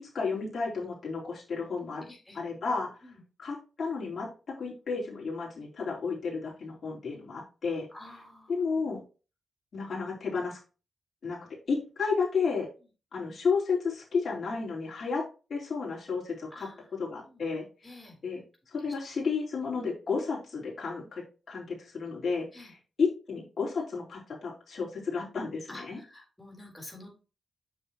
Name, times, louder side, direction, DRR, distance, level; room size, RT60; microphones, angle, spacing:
voice 1, 0.1-2.1 2.3-2.9 3.4-4.3 4.6-7.9 8.5-9.0 9.7-10.6 11.2-11.4 11.7-12.7 13.1-15.2 15.5-16.7 17.0-17.6 18.2-18.4 18.7-21.2 21.5-26.0, left 5 dB, 60° left, -6 dB, 4.2 m, -32 dB
voice 2, 2.0-2.4 3.0-3.2 7.9-8.8 16.5-17.0 17.2-17.4 17.8-18.2 22.5-22.7 25.7-27.1, left 1 dB, 10° left, 1 dB, 4.0 m, -49 dB
7.5 x 6.6 x 3.0 m, 0.33 s
cardioid pair, 70°, 0 cm